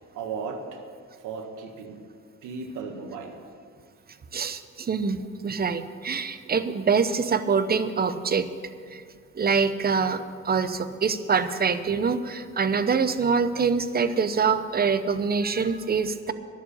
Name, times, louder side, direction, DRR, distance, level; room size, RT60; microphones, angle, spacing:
voice 1, 0.1-0.6 1.2-2.0 2.4-3.4 6.4-6.5, right 5 dB, 90° right, 4 dB, 1.6 m, -35 dB
voice 2, 4.3-8.5 8.9-9.0 9.3-16.3, right 5 dB, 30° right, 11 dB, 0.8 m, -25 dB
11.5 x 7.4 x 9.9 m, 2.1 s
cardioid pair, 90°, 30 cm